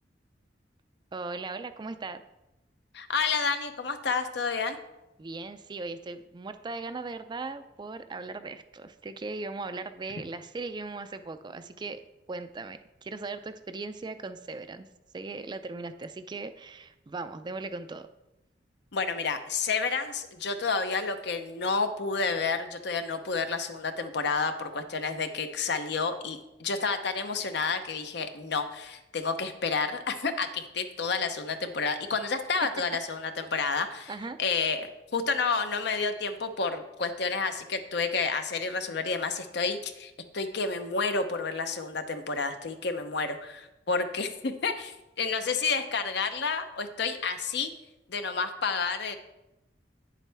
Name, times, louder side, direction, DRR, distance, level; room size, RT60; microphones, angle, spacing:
voice 1, 1.1-2.2 5.2-12.0 12.3-14.9 15.1-18.1 33.6-33.7 34.1-34.4, right 3 dB, 25° right, 10 dB, 0.4 m, -38 dB
voice 2, 2.9-4.8 18.9-34.1 34.4-47.7 48.1-49.2, left 4 dB, 65° left, 8 dB, 0.7 m, -30 dB
9.2 x 7.3 x 3.4 m, 0.95 s
head